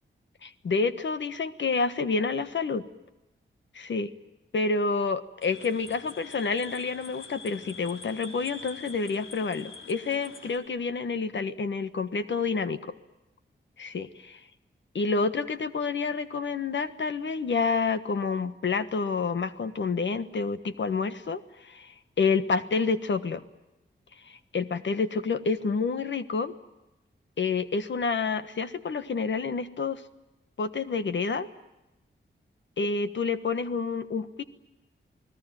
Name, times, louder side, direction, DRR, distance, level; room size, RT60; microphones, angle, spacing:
voice 1, 0.4-2.8 3.7-4.1 4.5-12.8 13.8-14.1 14.9-21.8 22.2-23.4 24.2-26.5 27.4-30.0 30.6-31.5 32.8-34.4, left 4 dB, 70° left, 11 dB, 1.4 m, -28 dB
sound 1, 5.4-10.6, left 4 dB, 85° left, 3.6 m, -45 dB
29.0 x 19.0 x 9.2 m, 0.98 s
wide cardioid pair, 115°, 20 cm